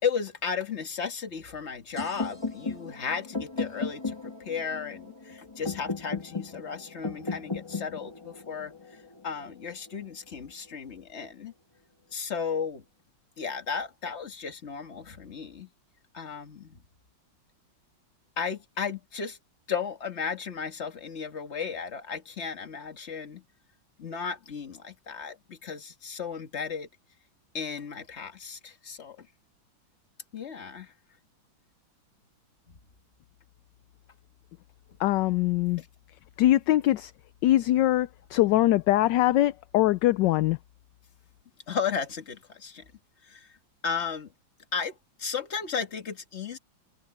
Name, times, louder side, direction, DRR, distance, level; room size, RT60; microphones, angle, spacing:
voice 1, 0.0-11.5 12.1-12.8 13.4-15.7 16.1-16.8 18.4-19.4 19.7-23.4 24.0-26.9 27.5-29.3 30.3-30.9 32.7-32.8 35.8-35.9 41.7-42.9 43.2-43.5 43.8-44.3 44.7-46.6, left 6 dB, 35° left, 1.8 m, -34 dB
sound 1, 2.0-9.9, left 4 dB, 15° left, 1.6 m, -36 dB
voice 2, 35.0-35.8 36.4-37.1 37.4-40.6, left 15 dB, 75° left, 1.1 m, -22 dB
omnidirectional pair, 2.1 m